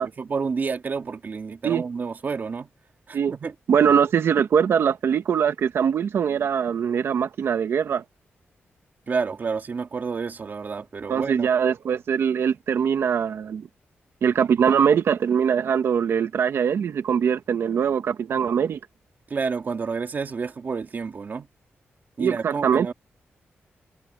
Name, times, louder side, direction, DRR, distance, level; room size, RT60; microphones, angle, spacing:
voice 1, 0.0-2.7 3.1-3.5 9.1-11.5 19.3-21.5 22.2-22.9, right 5 dB, 45° right, 2.5 m, -29 dB
voice 2, 3.7-8.0 11.1-13.7 14.2-18.8 22.2-22.9, right 7 dB, 70° right, 1.8 m, -22 dB
cardioid pair, 105°, 4 cm